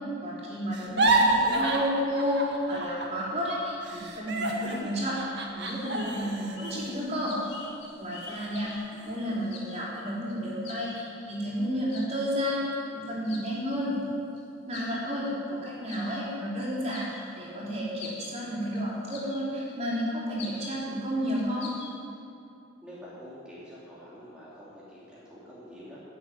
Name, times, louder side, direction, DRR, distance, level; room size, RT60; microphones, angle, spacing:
voice 1, 0.2-7.4 8.0-8.7 9.1-13.9 14.7-21.7, equal, 35° right, -6 dB, 4.3 m, -31 dB
sound 1, 0.7-3.2 3.5-7.9 8.4-8.5 8.9-9.4, right 2 dB, 55° right, 1.9 m, -29 dB
sound 2, 5.6-6.3 6.6-9.1 9.4-9.8 10.3-10.4 10.6-11.3 11.9-12.2 12.7-12.8 13.2-13.6 14.3-14.4 14.7-15.3 15.9-16.2 16.7-17.5 18.0-18.3 18.7-18.8 19.1-19.7 20.0-20.1 20.4-20.7 21.2-21.9, left 4 dB, 75° left, 4.8 m, -45 dB
voice 2, 22.8-26.0, equal, 5° right, -9 dB, 2.8 m, -46 dB
15.5 x 8.1 x 9.6 m, 2.7 s
head